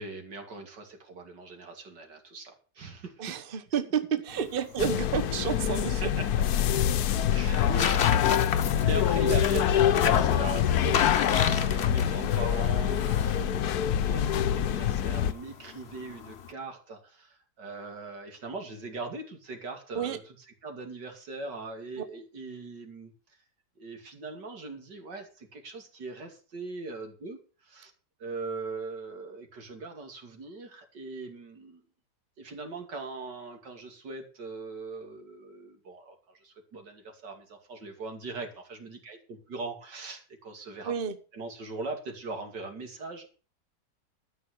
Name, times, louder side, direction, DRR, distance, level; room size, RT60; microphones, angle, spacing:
voice 1, 0.0-3.2 6.0-6.2 7.3-7.9 8.8-20.4 20.6-23.1 23.8-27.9 28.2-31.8 32.4-40.9 41.3-43.3, right 3 dB, 90° right, 4 dB, 3.2 m, -40 dB
voice 2, 3.2-6.1 7.7-8.4 19.9-20.2 22.0-22.1 40.8-41.1, right 7 dB, 35° right, 9 dB, 1.2 m, -31 dB
sound 1, 4.3-16.5, left 7 dB, 50° left, 0.9 m, -34 dB
sound 2, 4.8-15.3, left 10 dB, 70° left, 1.2 m, -25 dB
13.0 x 5.7 x 7.9 m, 0.37 s
omnidirectional pair, 1.8 m